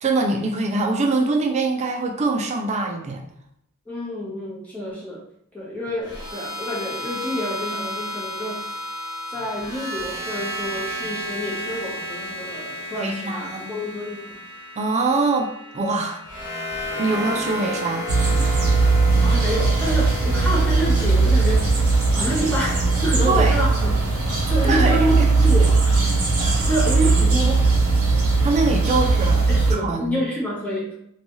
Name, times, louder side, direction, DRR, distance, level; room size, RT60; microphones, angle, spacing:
voice 1, 0.0-3.2 12.9-13.7 14.8-18.1 23.3-23.6 24.6-25.3 26.4-26.6 28.4-29.4 29.7-30.2, right 3 dB, 30° right, 3 dB, 0.3 m, -24 dB
voice 2, 3.9-5.2 5.5-8.7 9.3-14.4 19.2-24.0 24.5-26.0 26.6-27.8 28.9-29.0 29.3-30.9, equal, 5° left, -6 dB, 0.8 m, -28 dB
sound 1, 6.0-24.2, equal, 60° left, 1.1 m, -33 dB
sound 2, 18.1-29.7, right 3 dB, 70° right, 0.9 m, -19 dB
2.7 x 2.2 x 3.0 m, 0.74 s
head